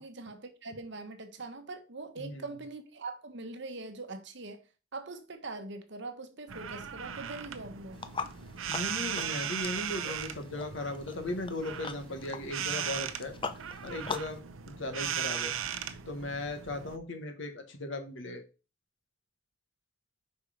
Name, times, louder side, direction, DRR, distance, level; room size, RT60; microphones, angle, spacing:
voice 1, 0.0-4.6 4.9-8.0, right 3 dB, 60° right, 1.0 m, -42 dB
voice 2, 2.2-2.5 8.7-13.3 13.8-14.4 14.7-15.5 16.1-18.4, left 2 dB, 65° left, 1.4 m, -37 dB
sound 1, 6.5-17.0, right 8 dB, 85° right, 0.7 m, -38 dB
sound 2, 7.9-14.4, left 4 dB, 25° left, 0.6 m, -42 dB
5.4 x 4.6 x 5.0 m
head